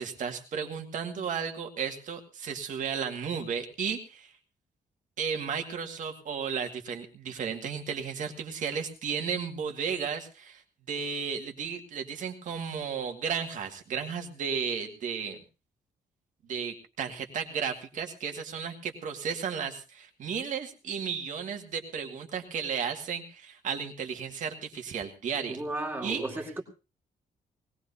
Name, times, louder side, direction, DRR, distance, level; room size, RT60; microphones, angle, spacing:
voice 1, 0.0-4.3 5.2-10.6 10.9-15.4 16.5-25.6 26.0-26.2, right 6 dB, 60° right, 4 dB, 2.0 m, -34 dB
voice 2, 25.5-26.6, right 2 dB, 15° right, 2 dB, 2.2 m, -34 dB
20.5 x 18.5 x 2.8 m, 0.31 s
wide cardioid pair, 170°, 15 cm